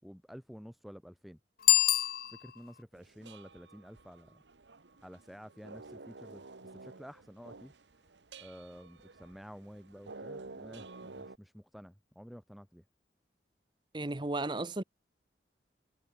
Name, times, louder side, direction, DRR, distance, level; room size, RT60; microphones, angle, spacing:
voice 1, 0.0-1.4 2.3-4.4 5.0-12.8, equal, ahead, 3.9 m, -51 dB
Bicycle bell, 1.6-2.8, left 15 dB, 55° left, 0.5 m, -27 dB
Thimphu Musical Instrument Market - Bhutan, 2.9-11.4, right 3 dB, 85° right, 1.3 m, -51 dB
voice 2, 13.9-14.8, right 2 dB, 25° right, 0.9 m, -34 dB
head